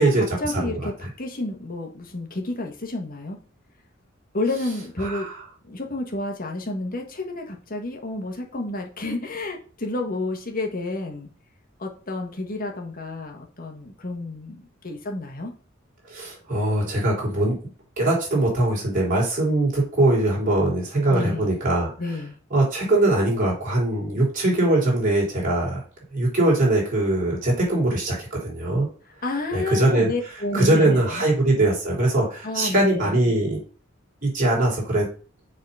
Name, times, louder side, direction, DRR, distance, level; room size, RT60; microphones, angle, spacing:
voice 1, 0.0-3.4 4.3-5.3 5.7-11.3 11.8-15.5 21.1-21.5 22.0-22.3 29.2-31.2 32.4-33.4, left 2 dB, 45° left, 3 dB, 1.5 m, -30 dB
voice 2, 5.0-5.3 16.1-17.6 18.0-21.9 22.5-25.8 26.1-28.9 29.5-30.1 30.5-33.6 34.2-35.1, right 2 dB, 40° right, -4 dB, 4.0 m, -21 dB
6.7 x 4.1 x 5.6 m, 0.39 s
head